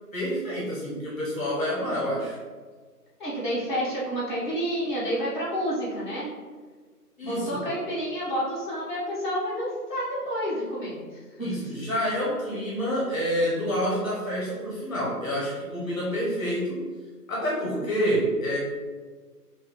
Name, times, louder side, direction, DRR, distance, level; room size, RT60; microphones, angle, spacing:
voice 1, 0.1-2.4 7.2-7.6 11.4-16.8 17.3-18.6, equal, 55° left, -5 dB, 1.3 m, -28 dB
voice 2, 3.2-6.3 7.2-11.1 11.4-11.7 17.9-18.1, equal, 30° left, -11 dB, 1.5 m, -29 dB
4.4 x 2.8 x 3.2 m, 1.5 s
figure-of-eight pair, 175°, 48 cm